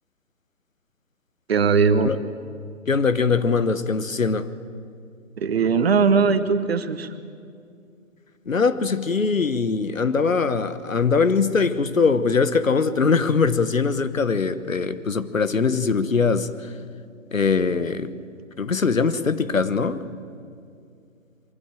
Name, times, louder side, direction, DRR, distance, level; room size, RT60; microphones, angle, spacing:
voice 1, 1.5-2.1 5.4-7.1, right 5 dB, 50° right, 11 dB, 1.4 m, -19 dB
voice 2, 2.9-4.5 8.5-16.7 17.3-18.1 18.6-20.0, left 5 dB, 75° left, 13 dB, 1.2 m, -22 dB
23.5 x 15.0 x 9.2 m, 2.3 s
figure-of-eight pair, 135°, 40 cm